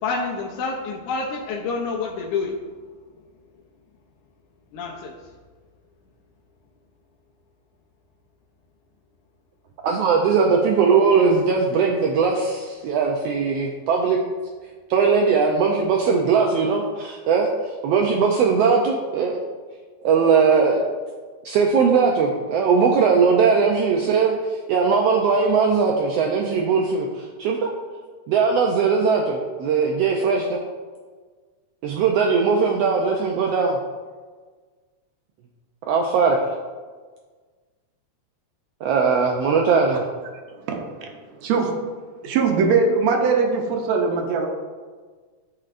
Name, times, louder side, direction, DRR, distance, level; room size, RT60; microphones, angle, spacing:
voice 1, 0.0-2.6 4.7-5.2, left 4 dB, 85° left, -3 dB, 2.2 m, -28 dB
voice 2, 9.8-14.2 14.9-17.5 17.8-19.4 20.0-20.8 21.4-27.7 28.3-30.6 31.8-33.8 35.9-36.4 38.8-40.0, right 5 dB, 90° right, 1 dB, 1.4 m, -19 dB
voice 3, 40.7-41.1 41.4-41.7 42.2-44.5, right 4 dB, 70° right, 2 dB, 1.9 m, -21 dB
12.5 x 4.3 x 2.5 m, 1.5 s
omnidirectional pair, 3.5 m